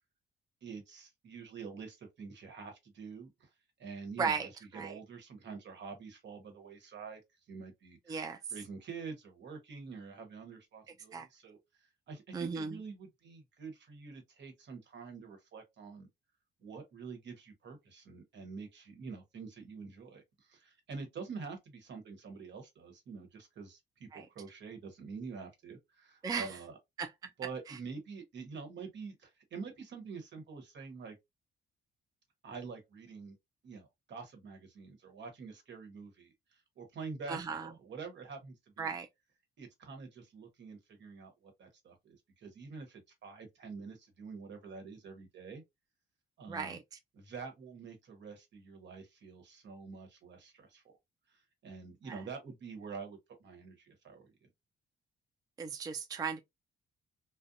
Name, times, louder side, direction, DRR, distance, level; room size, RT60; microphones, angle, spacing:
voice 1, 0.6-3.5 3.8-7.2 7.5-8.2 8.5-11.6 12.1-16.1 16.6-26.8 27.4-31.1 32.4-33.4 33.6-38.9 39.6-45.6 46.4-46.8 47.1-50.9 51.3-54.5, right 5 dB, 65° right, 1.1 m, -47 dB
voice 2, 4.2-4.5 4.7-5.0 8.1-8.4 11.1-11.3 12.3-12.8 24.1-24.3 26.2-26.5 27.0-27.3 27.7-27.8 37.3-37.7 38.8-39.1 46.5-47.0 52.1-52.2 55.6-56.4, right 5 dB, 20° right, 0.3 m, -36 dB
2.5 x 2.1 x 2.6 m
cardioid pair, 90°, 20 cm